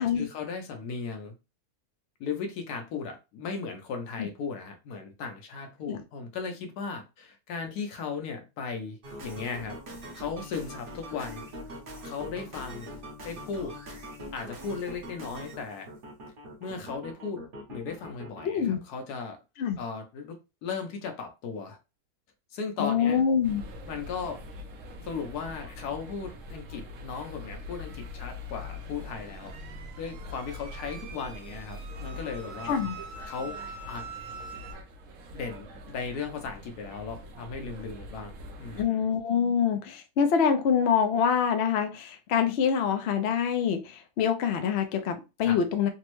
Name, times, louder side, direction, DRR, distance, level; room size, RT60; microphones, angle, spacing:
voice 1, 0.2-1.3 2.2-9.8 10.1-11.4 12.0-12.9 13.2-13.7 14.3-15.9 16.6-17.4 17.7-19.4 19.8-21.8 22.5-23.2 23.9-24.4 25.0-29.5 30.0-32.8 33.3-33.6 33.9-34.0 35.3-38.3 38.6-39.0 45.4-45.6, left 5 dB, 85° left, 1.3 m, -36 dB
sound 1, 9.0-18.4, equal, 45° right, 0.8 m, -42 dB
voice 2, 18.4-18.8 19.6-19.8 22.8-23.6 32.6-32.9 38.8-45.9, left 7 dB, 65° left, 0.6 m, -25 dB
sound 2, 23.4-38.8, left 1 dB, 65° right, 0.9 m, -43 dB
sound 3, 27.2-34.7, right 4 dB, 85° right, 1.2 m, -46 dB
3.4 x 2.0 x 3.0 m
omnidirectional pair, 1.6 m